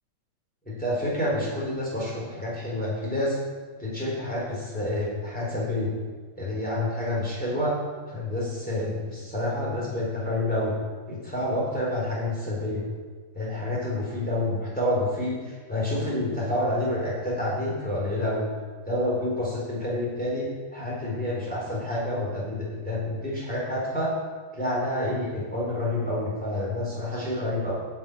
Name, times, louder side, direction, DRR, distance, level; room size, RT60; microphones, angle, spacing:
voice 1, 0.6-3.4 3.8-5.9 6.4-7.8 8.1-10.8 11.1-12.8 13.3-18.5 18.8-24.1 24.5-27.7, left 1 dB, 5° left, -6 dB, 4.1 m, -28 dB
9.5 x 7.4 x 8.5 m, 1.5 s
omnidirectional pair, 1.8 m